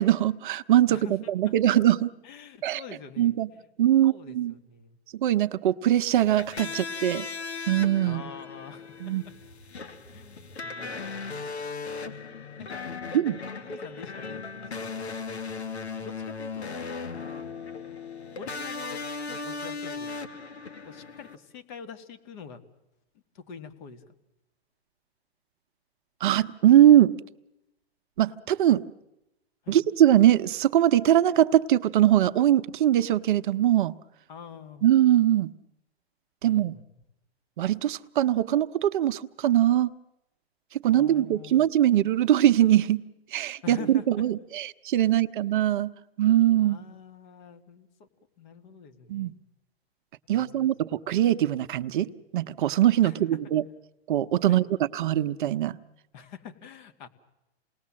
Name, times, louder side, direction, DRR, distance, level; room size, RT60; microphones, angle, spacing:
voice 1, 0.0-1.0 1.3-2.1 2.6-2.8 3.2-3.5 3.8-4.5 5.1-7.3 7.7-8.2 9.0-9.2 13.1-13.4 26.2-27.1 28.2-28.8 29.7-33.9 34.8-35.5 36.4-36.7 37.6-39.9 40.8-43.0 43.3-45.9 46.2-46.8 49.1-49.3 50.3-53.6 54.1-54.6 54.9-55.8, right 12 dB, 50° right, 11 dB, 0.8 m, -22 dB
voice 2, 0.9-1.5 2.2-5.0 6.7-6.8 8.0-9.0 9.3-9.4 10.1-11.4 12.6-12.8 13.4-15.0 16.0-17.0 18.4-20.3 20.9-22.6 23.3-24.0 29.6-29.8 34.3-34.9 36.4-36.8 40.9-41.7 43.6-44.3 46.6-48.1 48.4-49.3 50.3-50.7 53.0-53.2 54.5-54.6 56.1-57.1, left 7 dB, 45° left, 8 dB, 2.2 m, -46 dB
sound 1, 6.1-21.4, left 4 dB, 85° left, 1.9 m, -37 dB
28.5 x 19.5 x 7.6 m, 0.92 s
hypercardioid pair, 135°, 32 cm